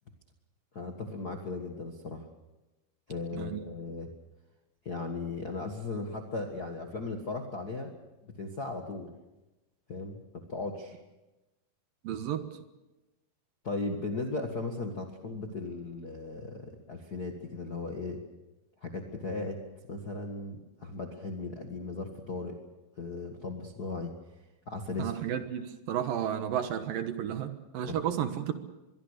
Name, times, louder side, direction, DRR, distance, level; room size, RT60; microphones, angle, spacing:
voice 1, 0.7-2.3 3.1-4.1 4.8-7.9 8.2-9.1 9.9-10.2 10.5-11.0 13.6-18.2 18.8-19.6 19.9-22.6 23.0-24.1 24.7-25.1 27.9-28.0, left 3 dB, 45° left, 2 dB, 1.2 m, -37 dB
voice 2, 12.0-12.5 25.0-28.5, right 10 dB, 70° right, 9 dB, 2.8 m, -32 dB
24.0 x 22.5 x 6.6 m, 1.0 s
omnidirectional pair, 4.6 m